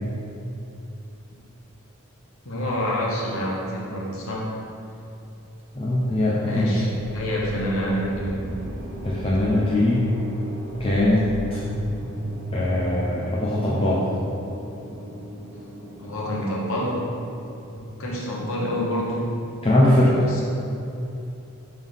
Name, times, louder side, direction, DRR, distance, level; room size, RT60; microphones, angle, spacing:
voice 1, 2.4-4.6 6.5-6.9 7.1-8.4 16.0-17.1 17.7-19.3 20.1-20.5, equal, 70° left, -4 dB, 1.2 m, -27 dB
voice 2, 5.7-6.8 9.0-10.1 10.8-11.6 12.5-14.1 19.6-20.3, left 1 dB, 25° left, -7 dB, 0.6 m, -21 dB
sound 1, 6.9-17.4, equal, 70° right, 0.9 m, -35 dB
5.4 x 3.7 x 5.6 m, 2.8 s
head